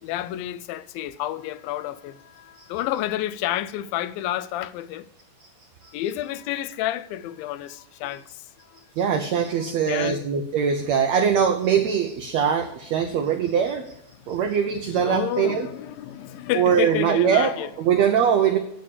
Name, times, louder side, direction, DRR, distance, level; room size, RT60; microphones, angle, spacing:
voice 1, 0.0-5.1 5.9-8.8 9.6-10.3 14.2-14.3 15.0-17.7, left 13 dB, 85° left, 2.3 m, -30 dB
voice 2, 9.0-13.9 14.3-15.7 16.5-18.6, right 7 dB, 85° right, 1.5 m, -22 dB
9.1 x 8.4 x 6.8 m
omnidirectional pair, 4.1 m